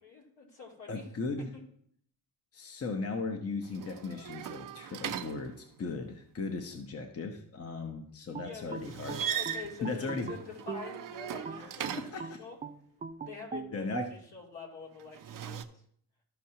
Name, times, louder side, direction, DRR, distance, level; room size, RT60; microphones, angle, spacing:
voice 1, 0.0-1.1 1.5-1.6 8.2-12.6 13.2-15.8, left 5 dB, 75° left, -3 dB, 3.1 m, -46 dB
voice 2, 0.9-1.5 2.5-5.5 5.8-9.2 9.8-10.3 11.5-12.2 13.7-14.1, left 4 dB, 35° left, 4 dB, 0.9 m, -37 dB
sound 1, 3.6-6.0 8.8-12.4 15.0-15.6, right 9 dB, 50° right, 0.6 m, -39 dB
sound 2, 8.3-10.9 11.5-14.2, right 5 dB, 20° right, 0.3 m, -41 dB
13.5 x 5.5 x 2.8 m, 0.65 s
cardioid pair, 105°, 42 cm